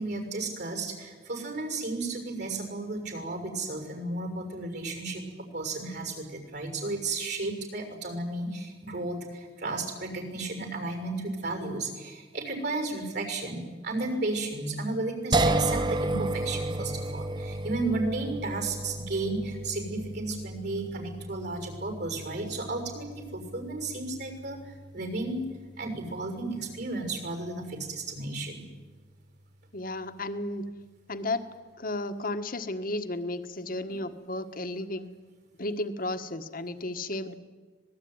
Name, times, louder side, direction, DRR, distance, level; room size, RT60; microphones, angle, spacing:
voice 1, 0.0-5.2 5.5-25.5 25.8-28.6, right 2 dB, 65° right, 5 dB, 6.6 m, -33 dB
sound 1, 15.3-28.4, right 2 dB, 25° right, 1.0 m, -34 dB
voice 2, 29.7-30.6 31.1-31.4 31.8-35.1 35.6-37.3, left 2 dB, 50° left, 8 dB, 1.6 m, -33 dB
25.5 x 20.0 x 9.7 m, 1.4 s
head